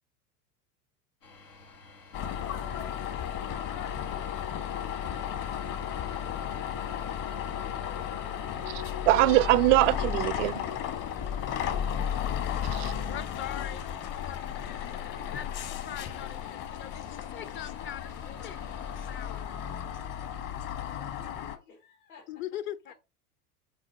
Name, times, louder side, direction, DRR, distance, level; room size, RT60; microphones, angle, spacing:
sound 1, 1.2-19.5, left 3 dB, 85° left, 1.7 m, -53 dB
sound 2, 2.1-21.6, left 9 dB, 45° left, 1.5 m, -34 dB
voice 1, 4.0-5.5 6.0-6.4 7.6-8.5 21.0-22.4 22.9-23.0, left 5 dB, 70° left, 2.4 m, -54 dB
voice 2, 8.7-10.6 12.7-12.9, right 19 dB, 55° right, 0.5 m, -23 dB
voice 3, 13.1-14.4 15.0-18.6 19.0-19.6 22.3-22.9, left 11 dB, 25° left, 0.6 m, -41 dB
6.6 x 4.1 x 6.2 m
figure-of-eight pair, 85°, 46 cm